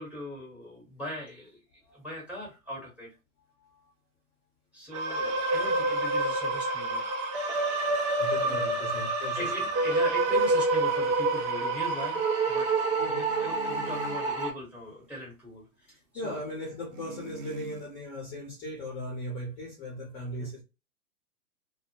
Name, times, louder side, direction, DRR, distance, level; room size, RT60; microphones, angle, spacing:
voice 1, 0.0-1.6 1.9-3.1 4.7-7.1 8.4-8.7 9.3-12.8 13.1-15.9 16.2-16.4 20.4-20.5, left 1 dB, 5° right, 1.1 m, -40 dB
voice 2, 3.6-3.9 6.1-6.4 7.8-9.9 13.0-13.3 13.8-14.1 15.9-20.6, left 1 dB, 25° left, 0.7 m, -39 dB
sound 1, 4.9-14.5, right 2 dB, 30° right, 0.5 m, -27 dB
sound 2, 13.3-14.3 16.9-17.9, right 5 dB, 75° right, 0.8 m, -43 dB
2.1 x 2.0 x 2.9 m
hypercardioid pair, 130°, 44 cm